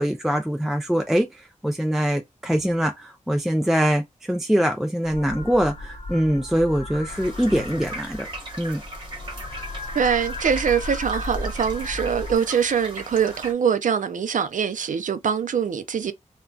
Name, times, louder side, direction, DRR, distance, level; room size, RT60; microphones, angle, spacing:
voice 1, 0.0-8.3 8.6-8.8, equal, 5° right, 0.3 m, -23 dB
sound 1, 5.0-12.4, left 2 dB, 50° left, 0.7 m, -35 dB
sound 2, 7.1-13.5, right 1 dB, 35° right, 1.0 m, -38 dB
voice 2, 9.9-16.1, right 7 dB, 75° right, 0.4 m, -23 dB
3.7 x 2.2 x 2.2 m
wide cardioid pair, 130°, 13 cm